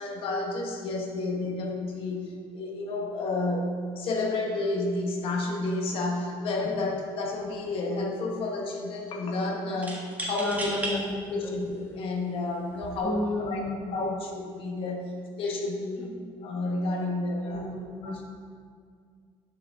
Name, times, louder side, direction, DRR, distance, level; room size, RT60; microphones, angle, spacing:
voice 1, 0.0-11.0 11.3-13.6 13.9-16.2 16.4-17.7 18.0-18.2, left 2 dB, 60° left, 1 dB, 1.5 m, -31 dB
sound 1, 6.7-6.9 7.2-7.9 9.8-11.0 11.7-11.8 12.7-13.0, right 1 dB, 15° right, 1.5 m, -35 dB
voice 2, 10.4-11.6 13.0-14.1 16.0-16.1 17.4-18.2, left 2 dB, 10° left, -2 dB, 1.5 m, -34 dB
10.0 x 6.2 x 3.8 m, 2.1 s
cardioid pair, 125°, 11 cm